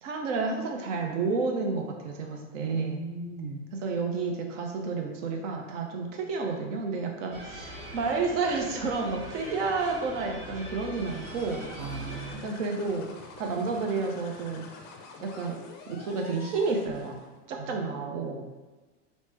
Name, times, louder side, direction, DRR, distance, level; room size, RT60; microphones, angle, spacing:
voice 1, 0.0-3.1 3.7-11.7 12.4-13.1 13.4-14.7 15.2-15.6 15.9-17.2 17.5-18.5, right 4 dB, 80° right, 2 dB, 0.7 m, -30 dB
voice 2, 2.6-3.6 11.8-12.5 17.7-18.0, right 4 dB, 40° right, 2 dB, 0.4 m, -36 dB
sound 1, 7.3-12.3, equal, 60° right, 1.3 m, -42 dB
sound 2, 10.8-17.4, left 4 dB, 30° left, 0.3 m, -47 dB
3.1 x 2.1 x 3.2 m, 1.2 s
supercardioid pair, 120°, 36 cm